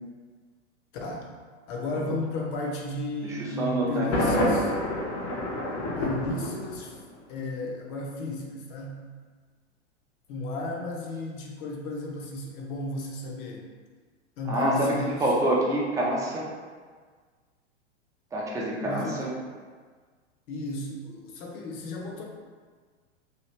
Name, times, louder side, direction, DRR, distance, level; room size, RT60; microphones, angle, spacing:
voice 1, 0.9-1.3 1.7-4.7 6.0-6.9 7.3-9.0 10.3-13.7 14.4-15.3 18.8-19.3 20.5-22.2, left 2 dB, 45° left, 0 dB, 0.7 m, -34 dB
voice 2, 3.2-4.1 4.3-4.6 14.5-16.5 18.3-19.3, right 1 dB, 10° right, -4 dB, 0.4 m, -27 dB
Thunder, 4.1-7.1, left 1 dB, 75° left, 1.1 m, -28 dB
3.1 x 2.3 x 3.0 m, 1.5 s
hypercardioid pair, 110°, 36 cm